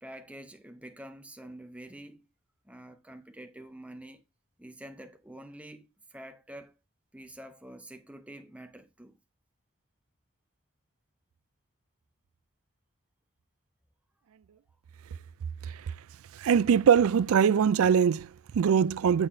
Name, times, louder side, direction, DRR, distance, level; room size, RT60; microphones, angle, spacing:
voice 1, 0.0-2.3 2.6-4.2 4.6-6.7 7.1-9.2, right 1 dB, 5° right, 0.7 m, -47 dB
voice 2, 16.4-19.3, right 7 dB, 85° right, 0.3 m, -22 dB
8.4 x 4.0 x 4.4 m
head